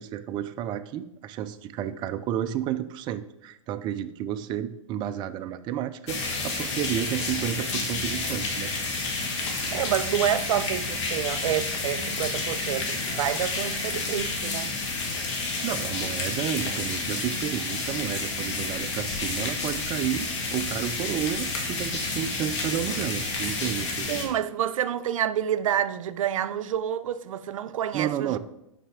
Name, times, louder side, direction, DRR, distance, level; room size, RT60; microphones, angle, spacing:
voice 1, 0.0-8.7 15.2-15.3 15.6-24.1 27.9-28.4, right 10 dB, 25° right, 0.4 m, -31 dB
sound 1, 6.1-24.3, left 3 dB, 60° left, 1.7 m, -30 dB
voice 2, 9.7-14.7 24.1-28.4, right 10 dB, 80° right, 0.5 m, -28 dB
5.7 x 5.6 x 4.9 m
hypercardioid pair, 135°, 17 cm